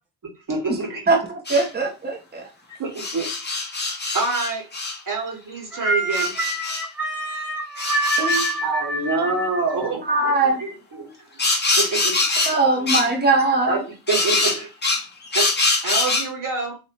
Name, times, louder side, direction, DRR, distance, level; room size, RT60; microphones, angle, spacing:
voice 1, 0.5-1.1 2.7-3.3 4.1-4.7 5.1-6.3 8.6-11.1 11.8-12.2 12.8-12.9 13.7-14.7 15.3-15.5 15.8-16.8, right 3 dB, 40° right, 0 dB, 1.6 m, -26 dB
voice 2, 1.1-2.5 8.2-8.5 9.3-9.4 10.0-10.6 12.4-13.8, right 3 dB, 20° right, 0 dB, 1.2 m, -21 dB
sound 1, 1.5-1.7 3.0-5.0 6.1-6.8 7.8-8.6 11.4-12.6 12.9-13.1 14.1-16.3, left 3 dB, 20° left, 1.0 m, -23 dB
voice 3, 5.7-9.1, right 1 dB, ahead, -2 dB, 0.8 m, -25 dB
3.0 x 2.9 x 3.1 m, 0.29 s
supercardioid pair, 55°, 48 cm